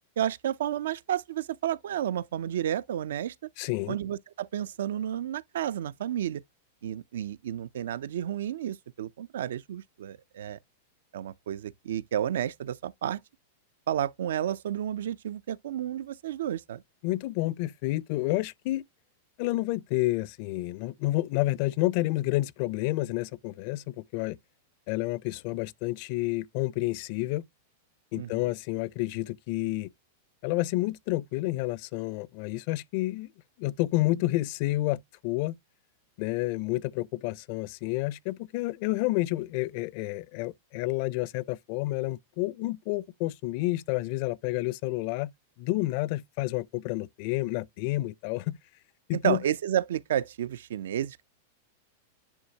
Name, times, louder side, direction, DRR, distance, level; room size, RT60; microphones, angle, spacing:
voice 1, 0.2-3.3 3.9-6.4 6.8-10.6 11.1-13.2 13.9-16.8 28.2-28.3 49.2-51.2, right 11 dB, 80° right, 0.4 m, -31 dB
voice 2, 3.6-4.0 17.0-18.8 19.4-24.4 24.9-27.4 28.1-29.9 30.4-33.3 33.6-35.6 36.2-45.3 45.6-48.6 49.1-49.4, left 18 dB, 50° left, 0.4 m, -29 dB
9.8 x 3.5 x 2.8 m
supercardioid pair, 145°, 0 cm